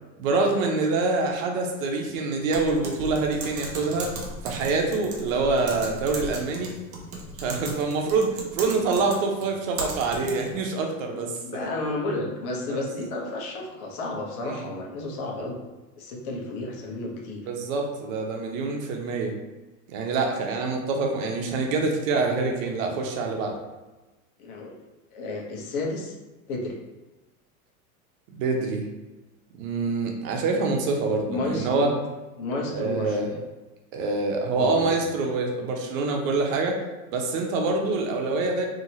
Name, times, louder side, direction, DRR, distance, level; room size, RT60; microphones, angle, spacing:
voice 1, 0.2-4.1 4.4-6.7 7.4-11.3 12.7-12.8 14.4-14.7 17.5-19.3 19.9-23.6 28.4-28.8 29.6-31.9 32.7-33.3 33.9-36.8 37.1-38.7, right 3 dB, 65° right, 2 dB, 0.8 m, -26 dB
Typing, 2.5-10.6, right 2 dB, 35° right, 0.6 m, -37 dB
voice 2, 11.4-15.6 16.0-17.5 24.4-24.7 25.1-26.1 26.5-26.7 31.2-32.0 32.4-33.4 34.6-34.9, left 2 dB, 75° left, -1 dB, 1.0 m, -32 dB
2.9 x 2.8 x 2.8 m, 1.1 s
supercardioid pair, 115°, 43 cm